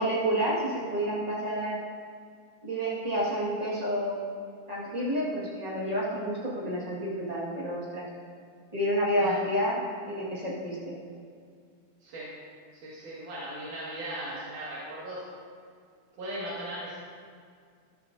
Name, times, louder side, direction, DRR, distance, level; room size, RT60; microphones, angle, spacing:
voice 1, 0.0-1.8 2.6-4.2 4.7-8.1 8.7-10.9, equal, 25° right, -6 dB, 0.8 m, -29 dB
voice 2, 12.0-12.3 12.7-15.3 16.2-17.0, right 1 dB, 80° right, -8 dB, 3.4 m, -38 dB
12.5 x 12.5 x 2.6 m, 2.1 s
omnidirectional pair, 3.6 m